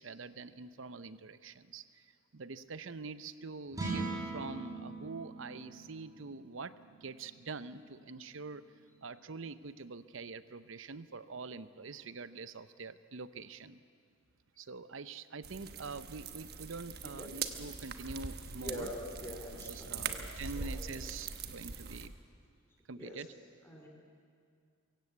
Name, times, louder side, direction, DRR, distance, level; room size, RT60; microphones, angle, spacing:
voice 1, 0.0-6.7 7.0-8.6 9.0-13.8 14.6-18.9 19.7-22.1 22.9-23.3, right 4 dB, 65° right, 14 dB, 0.7 m, -45 dB
sound 1, 3.7-10.1, right 3 dB, 20° right, 6.5 m, -43 dB
sound 2, 15.4-22.1, right 5 dB, 50° right, 1.2 m, -42 dB
voice 2, 17.2-17.5 18.6-20.2 20.6-20.8 23.0-23.2 23.6-23.9, left 1 dB, 10° left, -1 dB, 2.7 m, -44 dB
23.5 x 16.0 x 8.2 m, 2.1 s
head